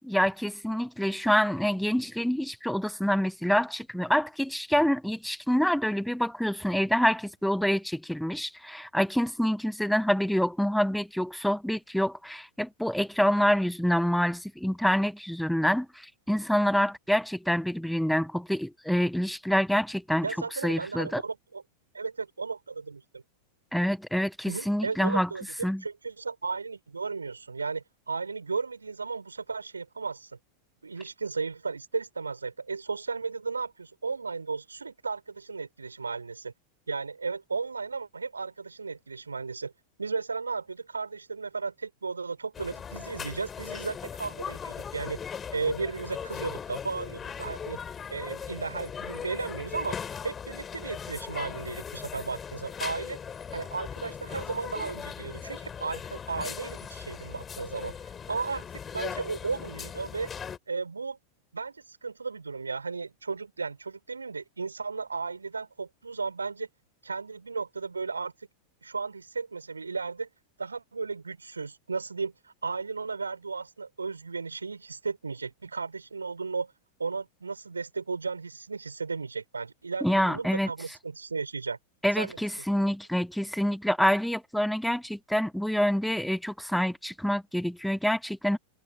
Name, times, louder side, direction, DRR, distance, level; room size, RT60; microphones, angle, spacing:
voice 1, 0.1-20.3 20.6-21.2 23.7-25.3 25.6-25.8 80.0-80.7 82.0-88.6, equal, ahead, 1.2 m, -27 dB
voice 2, 20.2-21.6 21.9-23.2 24.5-30.3 30.8-36.5 36.9-39.7 40.0-45.2 45.5-47.8 48.1-50.0 50.2-53.2 53.5-57.9 58.3-60.3 60.7-61.2 61.5-66.7 67.0-68.3 68.8-70.3 70.6-76.7 77.0-81.8 82.1-82.6, right 4 dB, 75° right, 5.7 m, -35 dB
sound 1, 42.5-60.6, left 7 dB, 20° left, 7.6 m, -39 dB
figure-of-eight pair, 90°, 0 cm